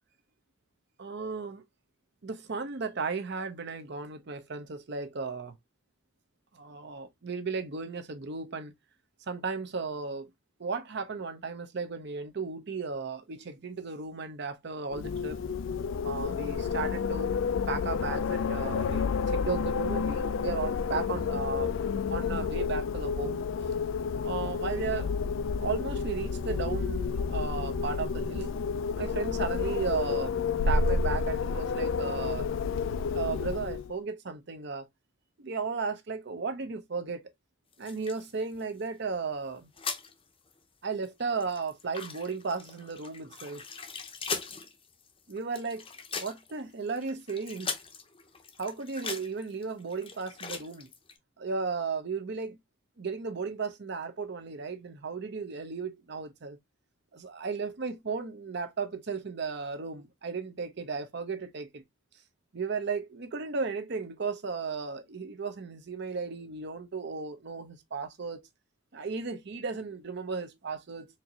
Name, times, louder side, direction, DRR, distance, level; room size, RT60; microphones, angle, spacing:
voice 1, 1.0-1.6 2.2-5.5 6.5-8.7 9.3-10.3 10.6-15.4 16.0-17.3 17.7-21.7 22.1-23.4 24.2-25.1 25.6-28.5 29.0-30.3 30.7-32.5 32.9-34.9 35.4-37.2 37.8-39.7 40.8-43.6 45.3-45.8 46.1-47.7 48.6-50.9 51.4-52.6 53.0-56.6 57.1-61.8 62.5-68.4 68.9-71.1, right 4 dB, 55° right, 0.6 m, -35 dB
Wind, 14.9-33.9, left 5 dB, 65° left, 0.3 m, -30 dB
sound 1, 37.7-39.2 39.5-40.1 40.5-40.6 40.9-51.2, left 5 dB, 25° left, 0.6 m, -40 dB
4.4 x 2.6 x 2.7 m
head